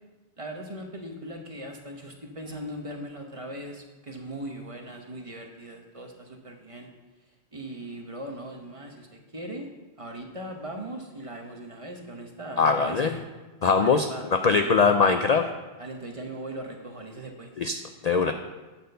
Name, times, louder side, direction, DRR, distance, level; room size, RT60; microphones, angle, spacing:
voice 1, 0.4-6.9 7.5-9.7 10.0-13.2 13.8-14.3 14.6-14.9 15.8-17.5, right 1 dB, 35° right, 3 dB, 0.9 m, -39 dB
voice 2, 12.6-13.1 13.6-15.5 17.6-18.3, left 5 dB, 55° left, 6 dB, 0.5 m, -22 dB
10.0 x 4.4 x 6.7 m, 1.2 s
omnidirectional pair, 1.1 m